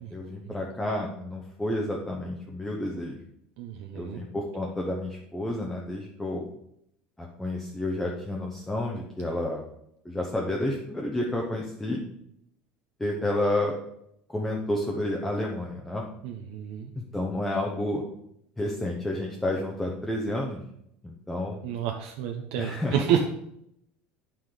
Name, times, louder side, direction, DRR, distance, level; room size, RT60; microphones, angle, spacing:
voice 1, 0.1-3.2 3.9-6.4 7.2-9.6 10.0-12.0 13.0-13.7 14.3-16.1 16.9-18.0 18.6-20.6 21.0-21.6 22.6-23.1, left 1 dB, 5° left, -1 dB, 0.8 m, -30 dB
voice 2, 3.6-4.2 16.2-16.9 21.6-23.3, right 8 dB, 65° right, 3 dB, 0.9 m, -29 dB
9.3 x 6.0 x 5.0 m, 0.77 s
cardioid pair, 175°, 4 cm